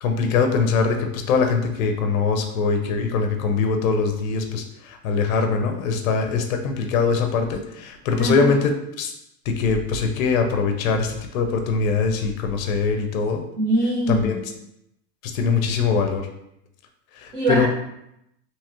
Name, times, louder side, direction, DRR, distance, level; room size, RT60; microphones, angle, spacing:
voice 1, 0.0-9.1 9.5-13.4 14.1-14.4 15.2-16.3 17.1-17.7, left 5 dB, 55° left, 5 dB, 0.5 m, -22 dB
voice 2, 8.2-8.5 13.6-14.4 17.3-17.7, right 1 dB, 60° right, -8 dB, 1.4 m, -22 dB
2.9 x 2.3 x 2.9 m, 0.80 s
supercardioid pair, 175°, 49 cm